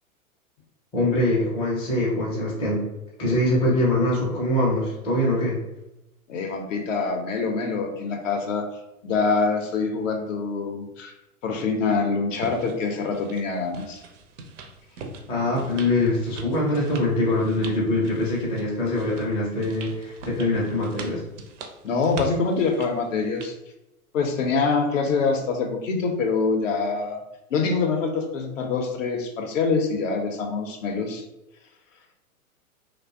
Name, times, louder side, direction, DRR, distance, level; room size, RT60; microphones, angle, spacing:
voice 1, 0.9-2.8 3.2-5.6 15.3-21.2, left 1 dB, 15° left, -5 dB, 0.5 m, -23 dB
voice 2, 6.3-8.6 9.0-11.1 11.4-14.0 21.8-23.5 24.1-27.2 27.5-31.2, left 4 dB, 60° left, 3 dB, 0.6 m, -25 dB
sound 1, 12.4-23.5, right 3 dB, 55° right, 0.5 m, -42 dB
2.4 x 2.1 x 2.4 m, 0.90 s
figure-of-eight pair, 105°, 44 cm